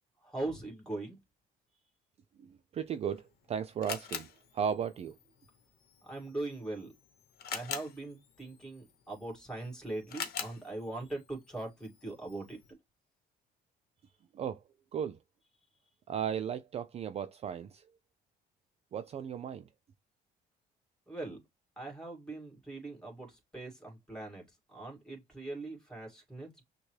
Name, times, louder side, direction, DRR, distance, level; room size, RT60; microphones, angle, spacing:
voice 1, 0.2-1.2 6.0-6.9 7.5-12.8 21.1-21.4 21.8-24.4 24.7-26.6, right 2 dB, 5° left, 2.1 m, -41 dB
voice 2, 2.4-4.3 4.5-5.1 14.3-14.6 14.9-15.2 16.1-17.8 18.9-19.7, right 8 dB, 40° right, 0.4 m, -35 dB
Camera, 2.9-12.7, left 8 dB, 65° left, 1.0 m, -46 dB
6.1 x 2.2 x 3.2 m
cardioid pair, 110°, 17 cm